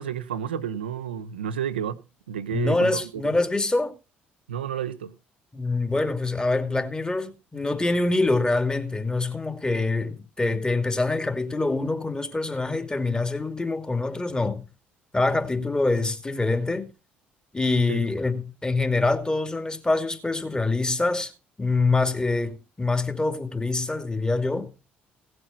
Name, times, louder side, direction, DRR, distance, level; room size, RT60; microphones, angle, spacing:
voice 1, 0.0-2.0 2.3-3.3 4.5-5.1 17.9-18.0, right 9 dB, 85° right, 0.9 m, -31 dB
voice 2, 2.5-3.9 5.5-14.6 15.1-16.9 17.5-21.3 21.6-24.7, left 3 dB, 15° left, 2.4 m, -25 dB
17.5 x 7.7 x 4.5 m
figure-of-eight pair, 50°, 5 cm